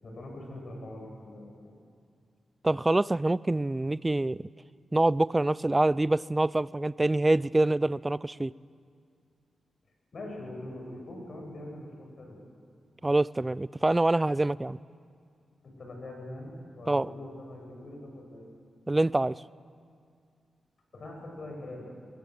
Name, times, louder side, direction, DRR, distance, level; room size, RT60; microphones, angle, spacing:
voice 1, 0.0-1.7 10.1-12.4 15.6-18.5 20.9-21.8, left 1 dB, 60° left, 7.2 m, -43 dB
voice 2, 2.6-4.4 4.9-8.5 13.0-14.8 16.9-17.1 18.9-19.4, right 2 dB, 20° right, 0.4 m, -25 dB
21.5 x 20.0 x 7.8 m
cardioid pair, 55°, 0 cm